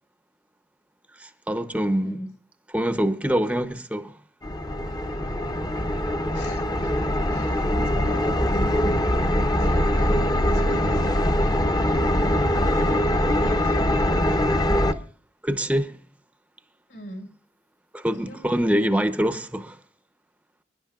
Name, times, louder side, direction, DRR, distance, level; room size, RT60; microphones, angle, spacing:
voice 1, 1.2-2.2 2.7-4.2 15.4-16.0 17.9-19.8, equal, 5° right, 0.7 m, -24 dB
sound 1, 4.4-14.9, left 1 dB, 20° left, 0.8 m, -22 dB
voice 2, 6.3-9.1 9.6-14.5 16.9-17.3 18.3-18.8, equal, 70° left, 4.6 m, -41 dB
28.0 x 11.0 x 2.4 m
head